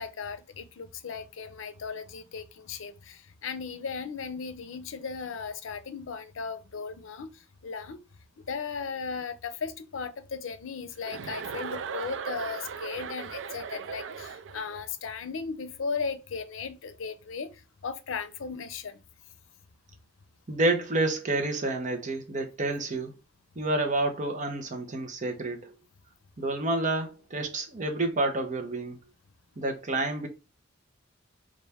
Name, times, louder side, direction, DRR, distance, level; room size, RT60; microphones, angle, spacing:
voice 1, 0.0-8.0 8.4-19.0, left 5 dB, 85° left, 0.5 m, -36 dB
Chuckle chortle, 11.0-14.8, right 6 dB, 70° right, 0.4 m, -37 dB
voice 2, 20.5-23.1 23.6-25.7 26.4-29.0 29.6-30.3, right 2 dB, 40° right, 0.8 m, -29 dB
4.2 x 2.5 x 3.4 m
head